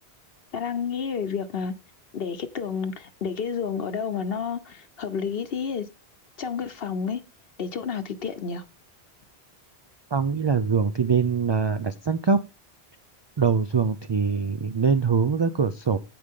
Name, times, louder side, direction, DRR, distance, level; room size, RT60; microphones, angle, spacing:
voice 1, 0.5-1.7 2.1-5.9 6.4-7.2 7.6-8.6, left 6 dB, 65° left, 1.0 m, -30 dB
voice 2, 10.1-12.4 13.4-16.0, right 5 dB, 40° right, 0.3 m, -23 dB
15.0 x 5.1 x 3.6 m
omnidirectional pair, 1.1 m